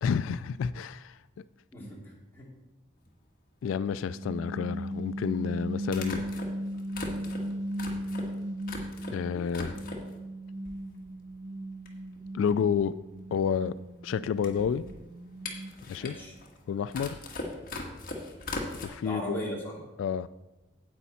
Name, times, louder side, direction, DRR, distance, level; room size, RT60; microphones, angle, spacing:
voice 1, 0.0-1.2 3.6-6.2 9.1-9.7 12.3-12.9 13.3-13.7 14.0-14.8 15.9-16.1 16.7-17.2 18.8-19.4 20.0-20.3, left 7 dB, 85° left, 15 dB, 0.3 m, -29 dB
voice 2, 1.7-2.5 15.9-16.3 19.0-19.8, equal, 10° left, -5 dB, 2.6 m, -38 dB
sound 1, 3.1-3.2 4.9-5.0 5.9-9.2 9.5-10.2 10.7-11.3 11.6-11.7 11.9-18.9, left 2 dB, 45° left, 1.5 m, -40 dB
sound 2, 4.1-9.4 9.7-15.9, equal, 40° right, 0.4 m, -37 dB
9.9 x 8.3 x 4.2 m, 1.1 s
head